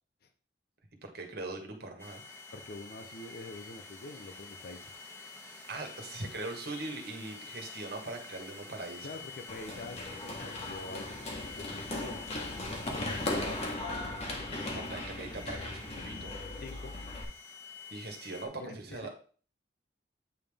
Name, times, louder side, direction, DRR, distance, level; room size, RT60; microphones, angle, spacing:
voice 1, 1.0-2.2 5.7-9.1 14.5-16.4 17.9-19.1, right 2 dB, 60° right, 3 dB, 1.5 m, -41 dB
sound 1, 2.0-18.5, left 4 dB, 15° left, 1.1 m, -47 dB
voice 2, 2.5-4.9 9.0-13.2 16.6-16.9 18.6-19.1, left 2 dB, 55° left, 7 dB, 0.7 m, -46 dB
Run, 9.5-17.2, left 2 dB, 35° left, 1.3 m, -38 dB
8.9 x 3.6 x 3.5 m, 0.41 s
head